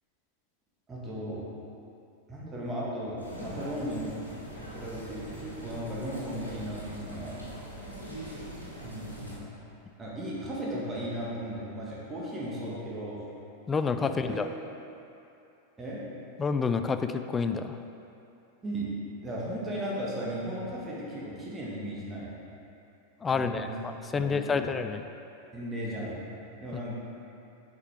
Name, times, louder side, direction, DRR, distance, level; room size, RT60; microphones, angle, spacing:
voice 1, 0.9-1.4 2.3-4.2 4.6-7.4 8.8-9.5 10.0-13.2 14.0-14.4 15.8-16.0 18.6-18.9 19.2-22.3 23.3-23.8 24.1-24.7 25.5-26.3 26.6-27.0, right 1 dB, 15° right, -6 dB, 1.7 m, -36 dB
sound 1, 3.2-9.4, right 1 dB, 85° left, 1.4 m, -42 dB
voice 2, 13.7-14.5 16.4-17.8 23.2-25.0, left 5 dB, 20° left, 8 dB, 0.3 m, -29 dB
8.2 x 5.3 x 3.5 m, 2.8 s
figure-of-eight pair, 90°, 0 cm